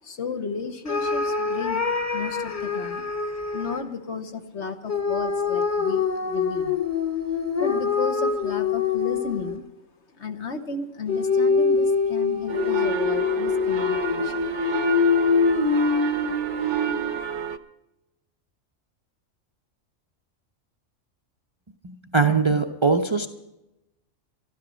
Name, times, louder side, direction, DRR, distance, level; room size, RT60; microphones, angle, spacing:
voice 1, 0.0-3.1 3.5-6.8 7.6-9.7 10.2-14.5, left 5 dB, 60° left, 7 dB, 1.4 m, -33 dB
sound 1, 0.9-3.8 4.9-9.7 11.1-17.2, left 5 dB, 15° left, 1.1 m, -24 dB
sound 2, 12.5-17.6, right 9 dB, 65° right, 1.1 m, -30 dB
voice 2, 21.8-23.3, right 4 dB, 25° right, 5 dB, 0.7 m, -21 dB
13.0 x 12.5 x 6.3 m, 0.94 s
omnidirectional pair, 1.3 m